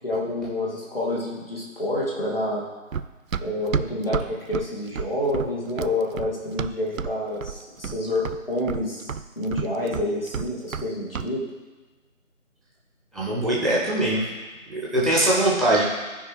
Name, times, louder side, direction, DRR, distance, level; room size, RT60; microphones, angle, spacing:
voice 1, 0.0-2.6 3.4-11.4, left 1 dB, 45° left, -4 dB, 2.2 m, -28 dB
Run, 2.9-7.2 7.4-8.0 8.3-10.9 11.1-11.3, right 6 dB, 80° right, 0.5 m, -30 dB
voice 2, 13.1-14.3 14.7-15.8, right 1 dB, ahead, -6 dB, 0.8 m, -21 dB
15.0 x 5.0 x 3.2 m, 1.3 s
figure-of-eight pair, 180°, 40 cm